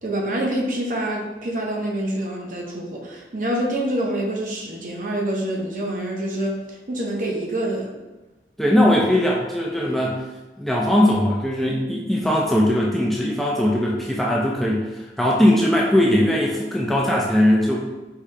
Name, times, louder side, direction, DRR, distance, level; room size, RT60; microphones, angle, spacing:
voice 1, 0.0-7.9, right 1 dB, 45° right, -1 dB, 0.7 m, -26 dB
voice 2, 8.6-10.2 10.6-17.8, left 1 dB, ahead, -4 dB, 0.3 m, -20 dB
4.7 x 2.8 x 3.2 m, 1.2 s
head